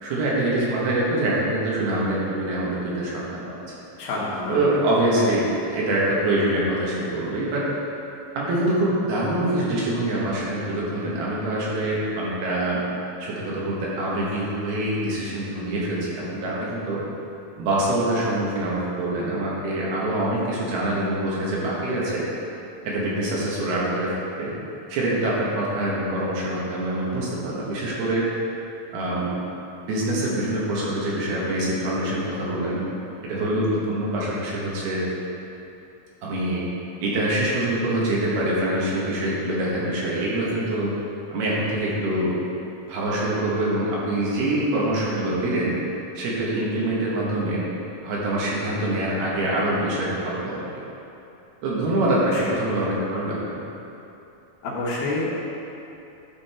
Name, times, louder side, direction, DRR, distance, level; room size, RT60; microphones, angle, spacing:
voice 1, 0.0-3.6 4.5-7.7 8.3-12.8 13.2-17.0 17.6-22.2 22.8-24.5 24.9-28.2 28.9-29.3 29.9-32.8 33.2-35.0 36.2-36.6 37.0-40.9 41.3-42.4 42.9-45.8 46.2-47.6 48.0-50.6 51.6-53.6, right 1 dB, 85° right, -6 dB, 3.4 m, -25 dB
voice 2, 4.0-4.5 44.5-44.6 52.3-52.5 54.6-55.3, left 2 dB, 75° left, -5 dB, 3.1 m, -28 dB
11.5 x 5.3 x 4.4 m, 2.9 s
omnidirectional pair, 4.4 m